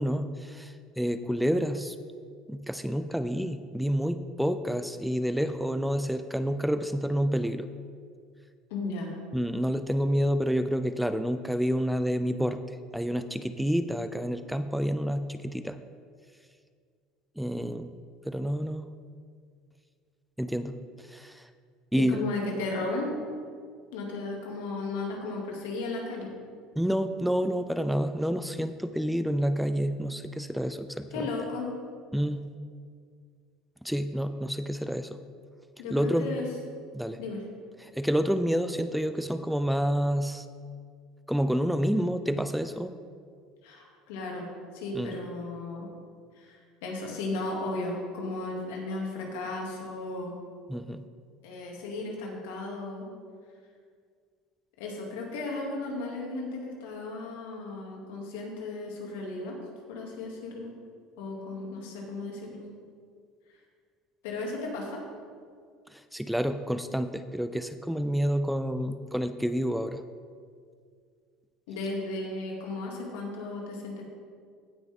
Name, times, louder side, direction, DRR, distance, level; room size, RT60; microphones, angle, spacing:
voice 1, 0.0-2.0 2.5-7.7 9.3-12.6 12.9-15.8 17.4-17.9 18.2-18.9 20.4-21.5 21.9-22.2 26.8-31.3 32.1-32.5 33.8-35.2 35.9-36.4 36.9-37.2 37.8-40.5 41.3-42.9 44.9-45.2 50.7-51.0 65.9-70.0, equal, ahead, 10 dB, 0.4 m, -29 dB
voice 2, 8.7-9.1 21.9-23.2 23.9-26.3 31.1-31.7 35.8-36.5 37.2-37.4 43.6-44.5 44.7-45.9 46.3-50.3 51.4-53.1 54.8-59.6 59.9-60.7 61.2-62.6 64.2-65.0 71.7-74.0, left 2 dB, 90° left, -1 dB, 2.4 m, -35 dB
16.0 x 6.1 x 3.6 m, 2.1 s
supercardioid pair, 120°, 0 cm